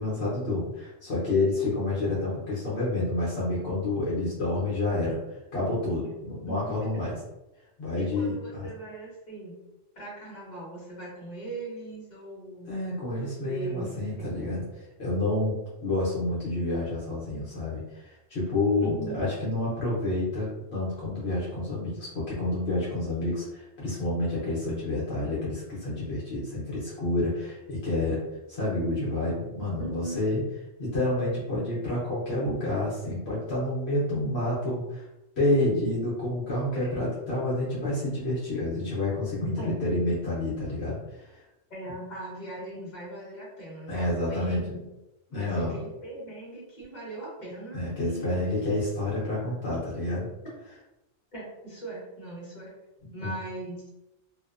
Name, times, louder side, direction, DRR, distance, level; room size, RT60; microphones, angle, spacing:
voice 1, 0.0-5.2 5.5-7.1 7.8-8.7 12.7-14.6 15.0-28.2 28.5-30.4 30.8-35.1 35.4-41.3 43.9-44.8 45.3-45.8 47.7-50.3 53.2-53.3, left 2 dB, 65° left, -8 dB, 1.0 m, -29 dB
voice 2, 6.5-6.9 8.0-9.6 9.9-12.8 13.2-13.9 14.2-14.4 18.8-19.2 29.8-30.2 36.7-36.9 39.6-39.7 41.7-44.8 45.3-48.4 51.3-52.7 53.1-53.8, right 2 dB, 40° left, -6 dB, 1.1 m, -40 dB
2.6 x 2.1 x 2.4 m, 0.98 s
omnidirectional pair, 1.2 m